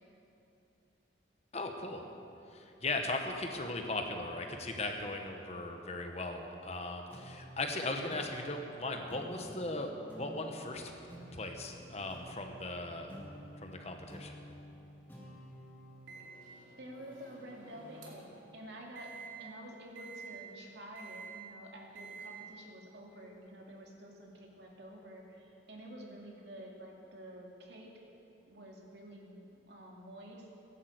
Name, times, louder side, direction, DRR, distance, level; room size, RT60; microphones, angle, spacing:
voice 1, 1.5-2.0 2.5-10.9 11.3-13.2 13.6-14.4, left 2 dB, 35° left, 4 dB, 1.1 m, -38 dB
sound 1, 7.1-17.9, equal, 10° left, 2.3 m, -52 dB
Microwave oven, 16.1-18.4 19.0-19.3 20.0-20.3 21.0-21.3 22.0-22.3, right 4 dB, 85° right, 2.7 m, -50 dB
voice 2, 16.8-19.1 19.4-27.9 28.5-30.5, right 1 dB, 60° right, -1 dB, 2.5 m, -50 dB
15.0 x 11.0 x 8.0 m, 2.9 s
head